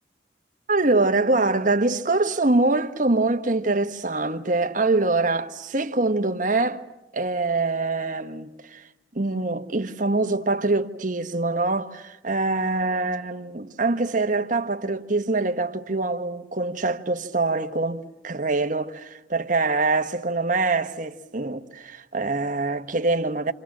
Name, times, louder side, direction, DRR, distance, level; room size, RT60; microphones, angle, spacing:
voice 1, 0.7-6.8 7.1-8.8 9.1-23.5, right 3 dB, 45° right, 1.5 m, -24 dB
28.5 x 27.5 x 7.5 m
head